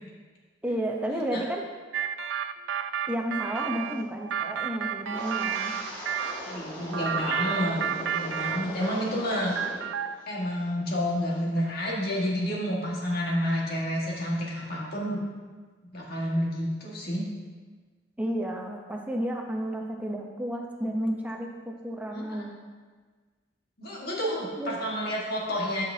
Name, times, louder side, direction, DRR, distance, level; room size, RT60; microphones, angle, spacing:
voice 1, 0.6-1.6 3.1-5.8 18.2-22.5 24.5-24.7, equal, 10° right, 0 dB, 0.8 m, -32 dB
sound 1, 1.9-6.4 6.9-9.0 9.3-10.3, right 8 dB, 70° right, 0.3 m, -31 dB
Wind, 5.1-9.9 10.2-10.6 11.1-11.3, left 1 dB, 25° left, 2.0 m, -39 dB
voice 2, 6.5-7.8 8.1-9.5 10.3-15.2 15.9-17.3 22.1-22.4 23.8-25.8, equal, 55° left, -4 dB, 1.8 m, -29 dB
12.0 x 5.9 x 2.8 m, 1.4 s
head